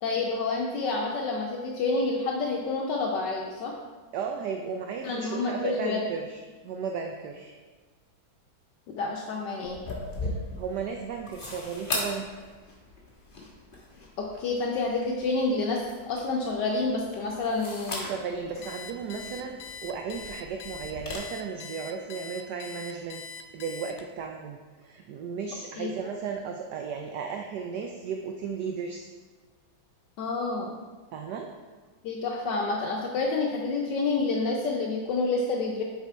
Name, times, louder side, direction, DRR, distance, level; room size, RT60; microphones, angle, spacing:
voice 1, 0.0-3.7 5.0-6.0 9.0-9.8 14.2-15.8 16.1-18.1 25.8-25.9 30.2-30.7 32.0-35.8, left 3 dB, 70° left, -1 dB, 1.2 m, -28 dB
voice 2, 4.1-7.6 10.2-12.3 18.1-23.2 23.5-29.1 31.1-31.5, right 6 dB, 75° right, 3 dB, 1.0 m, -35 dB
sound 1, 9.6-21.2, left 2 dB, 35° left, 1.1 m, -39 dB
Alarm, 18.6-24.3, left 5 dB, 85° left, 1.4 m, -42 dB
7.0 x 4.2 x 4.5 m, 1.4 s
omnidirectional pair, 2.1 m